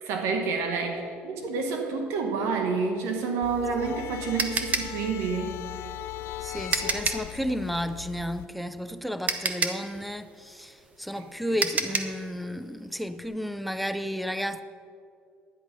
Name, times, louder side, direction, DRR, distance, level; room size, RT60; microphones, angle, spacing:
voice 1, 0.0-5.5, right 4 dB, 75° right, 1.4 m, -29 dB
sound 1, 3.4-8.5, left 14 dB, 65° left, 0.4 m, -39 dB
sound 2, 3.5-7.3 8.8-8.9 9.3-12.2, right 5 dB, 35° right, 0.9 m, -29 dB
voice 2, 6.4-14.6, equal, ahead, 0.5 m, -32 dB
11.0 x 9.5 x 5.3 m
cardioid pair, 105°, 5 cm